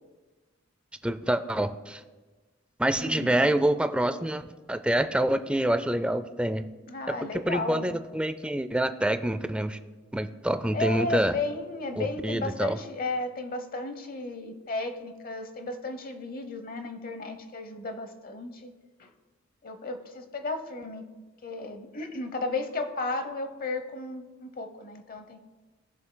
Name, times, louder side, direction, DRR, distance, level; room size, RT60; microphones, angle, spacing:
voice 1, 1.0-2.0 2.8-6.7 7.1-7.2 7.5-9.8 10.1-11.4 12.0-12.8, right 1 dB, 5° right, 11 dB, 0.3 m, -26 dB
voice 2, 3.0-3.4 6.9-7.9 10.7-18.7 19.0-19.1 19.6-21.1 21.4-25.4, left 3 dB, 45° left, 8 dB, 0.9 m, -34 dB
18.5 x 7.0 x 2.2 m, 1.3 s
head